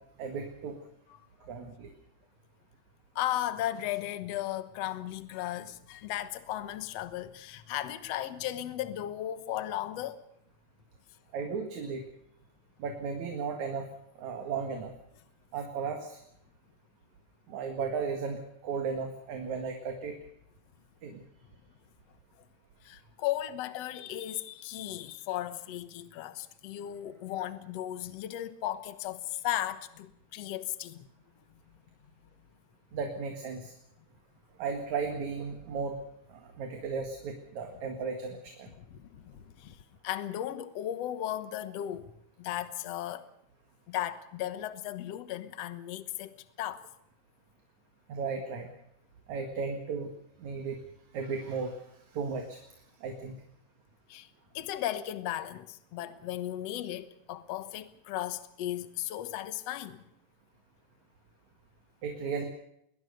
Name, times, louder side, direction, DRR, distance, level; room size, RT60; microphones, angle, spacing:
voice 1, 0.2-0.8 1.5-1.9 11.3-12.0 12.8-13.9 14.2-14.9 15.5-16.2 17.5-20.2 21.0-21.2 32.9-33.7 34.6-36.0 36.3-38.7 48.1-48.7 49.3-50.1 50.4-50.8 51.1-51.8 52.1-52.6 53.0-53.4 62.0-62.4, right 5 dB, 70° right, 3.2 m, -35 dB
voice 2, 1.1-1.5 3.2-10.2 22.8-31.1 38.8-39.8 40.0-42.1 42.4-43.3 43.9-46.9 54.1-54.3 54.5-60.0, left 13 dB, 60° left, 2.2 m, -36 dB
21.0 x 20.5 x 6.7 m
omnidirectional pair, 3.5 m